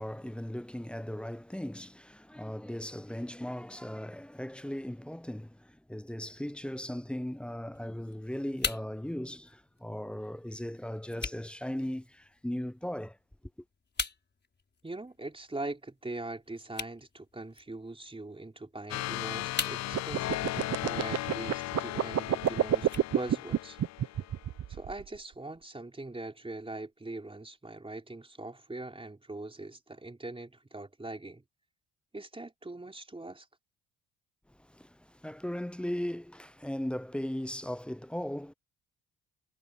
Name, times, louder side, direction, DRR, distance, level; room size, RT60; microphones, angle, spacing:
voice 1, 0.0-13.2 34.6-38.5, left 1 dB, 5° left, 0.8 m, -38 dB
sound 1, 7.7-23.7, left 4 dB, 30° left, 5.7 m, -44 dB
voice 2, 14.8-22.9 23.1-23.8 24.1-24.2 24.7-31.4 32.1-33.5, right 2 dB, 15° right, 4.1 m, -42 dB
sound 2, 18.9-24.4, left 16 dB, 55° left, 0.5 m, -37 dB
sound 3, 19.9-25.2, right 10 dB, 50° right, 1.1 m, -28 dB
supercardioid pair, 65°, 33 cm